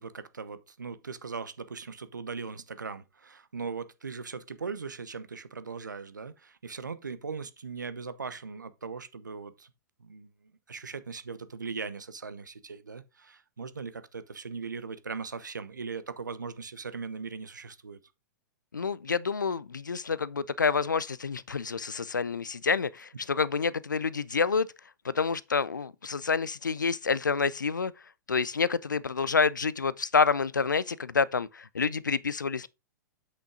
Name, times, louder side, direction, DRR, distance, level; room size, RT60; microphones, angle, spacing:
voice 1, 0.0-9.7 10.0-18.0, right 5 dB, 85° right, 1.0 m, -39 dB
voice 2, 18.7-24.7 25.0-27.9 28.3-32.7, left 5 dB, 90° left, 0.5 m, -28 dB
8.1 x 6.2 x 3.7 m
hypercardioid pair, 110°, 10 cm